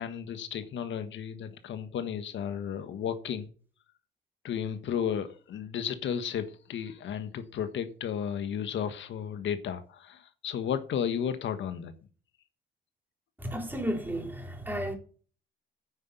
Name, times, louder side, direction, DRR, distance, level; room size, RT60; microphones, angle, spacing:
voice 1, 0.0-3.5 4.4-11.9, left 8 dB, 70° left, 1.4 m, -33 dB
voice 2, 13.4-15.0, equal, 10° right, 3.4 m, -33 dB
9.7 x 5.6 x 8.0 m
cardioid pair, 90°, 20 cm